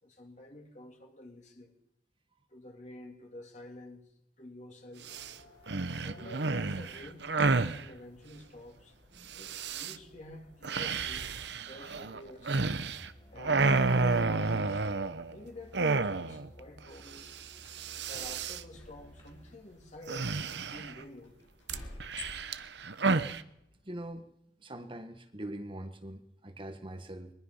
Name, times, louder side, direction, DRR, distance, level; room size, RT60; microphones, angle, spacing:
voice 1, 0.0-1.7 2.5-4.0 4.4-5.1 6.0-9.0 9.4-12.6 13.3-14.8 15.3-17.4 18.1-20.4 20.7-21.4, left 1 dB, 40° left, 2 dB, 3.6 m, -49 dB
sound 1, 5.0-5.3 5.7-7.8 9.3-10.0 10.6-13.1 13.4-15.3 15.7-16.5 16.8-16.9 17.1-17.4 17.7-18.6 20.1-21.0 21.7-23.4, right 3 dB, 65° right, 1.0 m, -30 dB
sound 2, 5.1-24.0, left 2 dB, 90° left, 7.7 m, -56 dB
Musical instrument, 12.9-19.7, equal, 25° left, 4.3 m, -56 dB
voice 2, 23.8-24.3 24.6-27.3, right 1 dB, 30° right, 6 dB, 1.6 m, -42 dB
22.5 x 20.5 x 5.6 m, 0.77 s
head